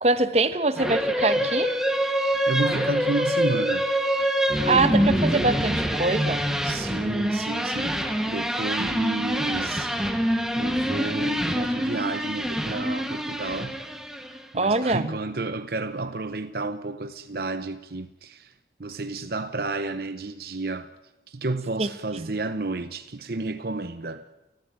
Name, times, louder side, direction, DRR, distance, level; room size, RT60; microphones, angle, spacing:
voice 1, 0.0-1.7 4.7-6.4 14.5-15.2 21.8-21.9 22.2-22.3, right 3 dB, 35° right, 1.2 m, -23 dB
sound 1, 0.8-14.4, equal, 5° right, 1.6 m, -25 dB
voice 2, 2.5-3.9 6.6-9.9 10.6-13.8 14.5-18.5 18.8-20.9 21.3-24.2, right 3 dB, 60° right, 0.8 m, -31 dB
30.0 x 14.5 x 9.1 m
head